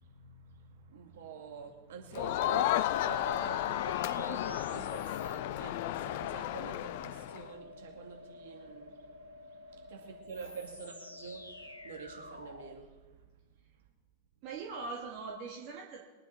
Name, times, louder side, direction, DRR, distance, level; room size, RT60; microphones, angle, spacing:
voice 1, 0.0-13.8, right 6 dB, 60° right, 1 dB, 2.4 m, -47 dB
Crowd, 2.1-7.5, left 14 dB, 50° left, 0.4 m, -33 dB
sound 1, 2.9-12.8, left 2 dB, 85° left, 1.0 m, -50 dB
voice 2, 14.4-16.0, right 4 dB, 40° right, -1 dB, 2.1 m, -41 dB
23.0 x 9.6 x 4.2 m, 1.3 s
figure-of-eight pair, 90°, 0 cm